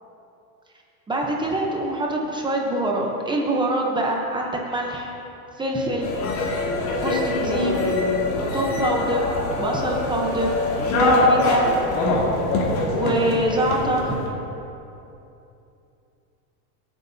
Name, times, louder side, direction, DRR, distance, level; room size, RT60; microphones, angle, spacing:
voice 1, 1.1-5.1 5.6-6.1 7.0-7.8 8.5-9.2 9.6-10.5 11.0-11.7 13.0-14.1, right 1 dB, 10° right, -1 dB, 0.8 m, -25 dB
sound 1, 6.0-14.3, left 2 dB, 60° left, 2.4 m, -23 dB
24.5 x 8.3 x 2.8 m, 2.8 s
supercardioid pair, 150°, 48 cm